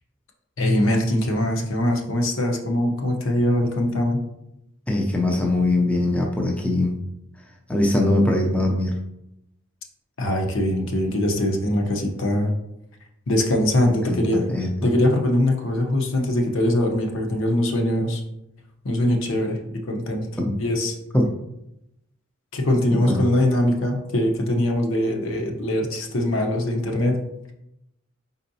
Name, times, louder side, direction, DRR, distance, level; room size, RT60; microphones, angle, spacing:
voice 1, 0.6-4.2 10.2-12.5 13.3-14.5 14.8-18.2 18.8-19.6 19.9-20.3 20.6-20.9 22.5-27.2, left 1 dB, 70° left, 2 dB, 0.8 m, -22 dB
voice 2, 4.9-7.0 7.7-8.9 14.1-14.9 20.4-20.5 21.1-21.3 22.9-23.2, left 1 dB, 5° left, 0 dB, 0.4 m, -22 dB
4.6 x 4.0 x 2.7 m, 0.84 s
head